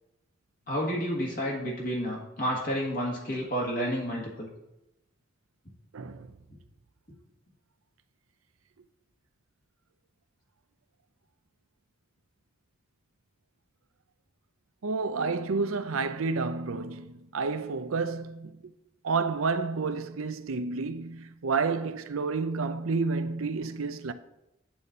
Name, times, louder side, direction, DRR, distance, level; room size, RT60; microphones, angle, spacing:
voice 1, 0.7-4.5, equal, 40° left, 1.7 m, -30 dB
voice 2, 5.9-6.3 14.8-18.7 19.0-24.1, right 4 dB, 85° right, 0.6 m, -30 dB
8.9 x 4.2 x 6.6 m
head